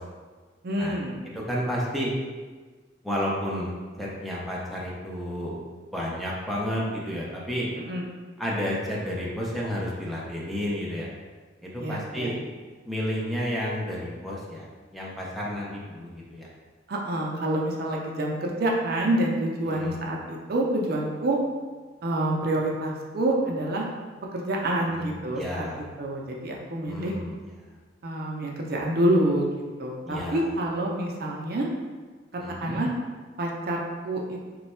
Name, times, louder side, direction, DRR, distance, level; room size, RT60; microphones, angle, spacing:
voice 1, 0.6-1.1 7.8-8.1 11.8-12.3 16.9-21.4 22.0-23.9 24.3-25.6 26.0-27.1 28.0-29.5 29.8-31.7 32.6-32.9 33.4-34.4, right 1 dB, 55° right, -1 dB, 0.5 m, -27 dB
voice 2, 1.3-2.1 3.0-5.6 5.9-7.7 8.4-11.1 11.6-12.4 12.9-14.7 14.9-16.5 19.7-20.0 24.8-25.8 26.8-27.3 30.0-30.4 32.4-32.8, equal, ahead, -5 dB, 0.5 m, -31 dB
3.1 x 2.2 x 4.2 m, 1.4 s
head